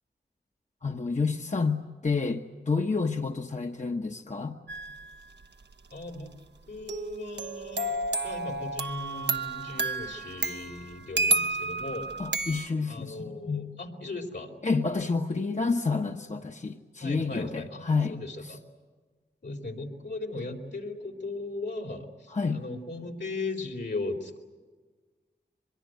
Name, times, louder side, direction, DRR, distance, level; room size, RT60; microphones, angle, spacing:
voice 1, 0.8-4.6 12.2-13.7 14.6-18.2 18.4-18.5 22.3-22.6, left 4 dB, 40° left, 4 dB, 1.2 m, -29 dB
sound 1, 4.7-5.1 6.9-12.7, right 2 dB, 80° right, 1.0 m, -31 dB
voice 2, 5.9-6.3 6.7-12.1 12.3-12.5 12.9-14.6 17.0-18.6 19.4-24.4, left 2 dB, 80° left, 1 dB, 4.0 m, -37 dB
24.0 x 22.5 x 9.3 m, 1.4 s
cardioid pair, 45°, 18 cm